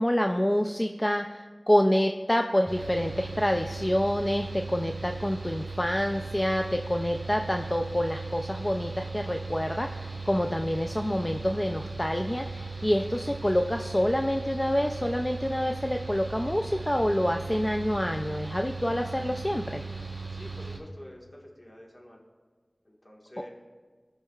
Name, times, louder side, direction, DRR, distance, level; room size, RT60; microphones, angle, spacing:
voice 1, 0.0-19.8, equal, 25° left, 4 dB, 0.3 m, -27 dB
Mechanical fan, 2.7-20.8, right 3 dB, 50° right, 1.5 m, -38 dB
voice 2, 20.3-22.2 22.8-23.5, equal, 45° left, -2 dB, 1.5 m, -48 dB
16.0 x 5.5 x 2.4 m, 1.5 s
wide cardioid pair, 45°, 0 cm